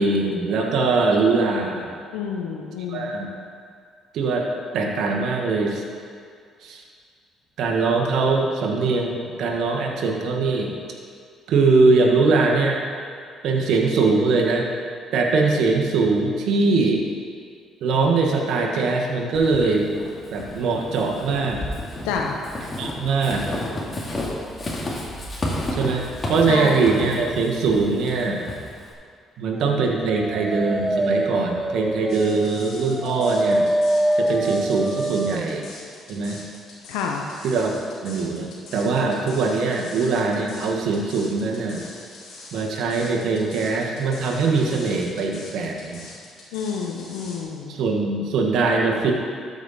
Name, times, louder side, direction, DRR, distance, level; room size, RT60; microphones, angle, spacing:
voice 1, 0.0-1.9 2.9-3.3 4.1-4.4 4.7-5.8 6.6-6.8 7.6-10.7 11.5-12.8 13.4-14.7 15.1-17.0 17.8-19.9 20.3-21.6 22.8-23.5 25.7-26.0 26.3-28.4 29.4-33.6 34.2-35.7 36.1-36.4 37.4-37.8 38.0-41.8 42.5-46.0 47.7-49.1, right 3 dB, 70° right, 0 dB, 1.4 m, -22 dB
voice 2, 2.1-3.1 22.0-22.4 26.5-27.0 31.4-31.5 36.9-37.3 46.5-47.8, left 6 dB, 90° left, 1 dB, 0.7 m, -29 dB
Walk footsteps / Squeak, 19.3-28.9, left 1 dB, 30° left, 2.1 m, -31 dB
Dog, 29.9-35.5, right 1 dB, 15° right, 0.4 m, -24 dB
sound 1, 32.1-47.4, left 2 dB, 70° left, 2.5 m, -43 dB
12.5 x 5.3 x 4.2 m, 2.2 s
supercardioid pair, 70°, 0 cm